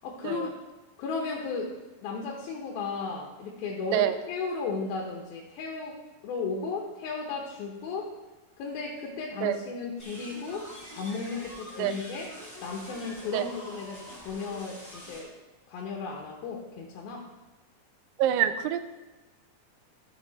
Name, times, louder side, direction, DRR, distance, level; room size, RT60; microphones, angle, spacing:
voice 1, 0.0-0.5 1.0-1.7 2.0-6.0 6.2-8.1 8.6-10.7 10.9-12.3 12.6-15.3 15.7-17.2, left 4 dB, 75° left, -1 dB, 2.7 m, -35 dB
sound 1, 10.0-15.2, equal, 5° left, 1.6 m, -45 dB
voice 2, 18.2-18.8, right 12 dB, 80° right, 10 dB, 2.1 m, -26 dB
12.0 x 5.8 x 4.0 m, 1.1 s
omnidirectional pair, 4.5 m